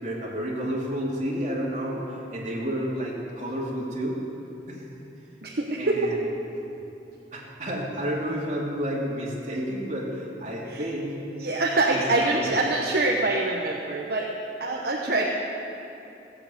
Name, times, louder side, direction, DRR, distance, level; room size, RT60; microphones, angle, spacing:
voice 1, 0.0-4.2 4.7-4.9 5.8-6.2 7.3-11.1 11.8-12.5 14.7-14.9, equal, 40° right, -4 dB, 2.8 m, -30 dB
voice 2, 5.4-6.1 10.7-10.9 11.4-14.3 14.6-15.3, right 2 dB, 55° right, -1 dB, 1.0 m, -25 dB
16.0 x 8.6 x 7.8 m, 2.9 s
head